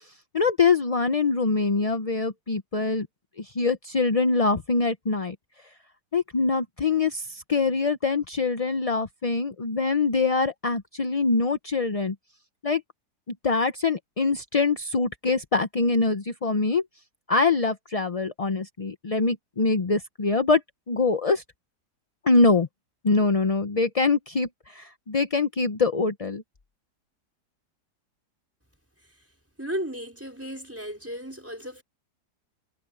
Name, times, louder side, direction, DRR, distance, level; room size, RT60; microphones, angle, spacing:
voice 1, 0.3-3.1 3.6-5.3 6.1-12.1 12.6-12.8 13.4-16.8 17.3-20.6 20.9-21.4 22.3-22.7 23.0-24.5 24.7-26.4, left 3 dB, 35° left, 0.6 m, -24 dB
voice 2, 29.6-31.8, equal, 10° right, 4.5 m, -34 dB
omnidirectional pair, 1.8 m